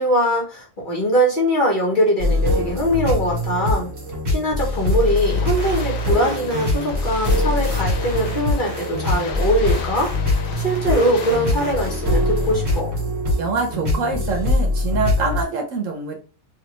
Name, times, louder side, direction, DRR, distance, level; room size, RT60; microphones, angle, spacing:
voice 1, 0.0-3.9 4.3-10.1 10.6-12.9, equal, 40° left, -2 dB, 1.1 m, -21 dB
sound 1, 2.2-15.4, left 2 dB, 55° right, 1.6 m, -23 dB
sound 2, 4.6-12.8, left 5 dB, 80° left, 1.0 m, -36 dB
sound 3, 4.9-11.9, right 1 dB, 30° right, 0.9 m, -36 dB
voice 2, 13.4-16.2, right 4 dB, 70° right, 2 dB, 1.3 m, -25 dB
3.3 x 2.5 x 3.0 m, 0.35 s
omnidirectional pair, 1.4 m